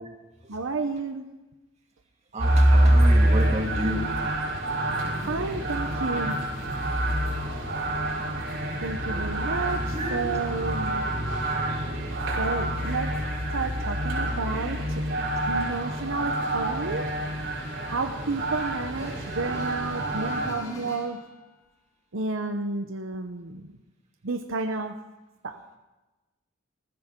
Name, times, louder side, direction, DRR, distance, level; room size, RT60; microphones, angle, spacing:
voice 1, 0.5-1.2 5.2-6.4 8.8-11.0 12.4-13.2 13.5-15.1 15.4-17.1 17.9-21.2 22.1-23.7 24.2-25.0 25.4-25.6, right 3 dB, 75° right, 6 dB, 0.9 m, -31 dB
voice 2, 2.3-4.0 9.9-10.3 16.6-16.8, equal, 35° right, 1 dB, 2.4 m, -30 dB
sound 1, 2.4-20.5, right 1 dB, 60° right, 4.9 m, -26 dB
sound 2, 19.0-21.4, left 1 dB, 15° left, 2.3 m, -43 dB
19.5 x 15.0 x 3.8 m, 1.1 s
head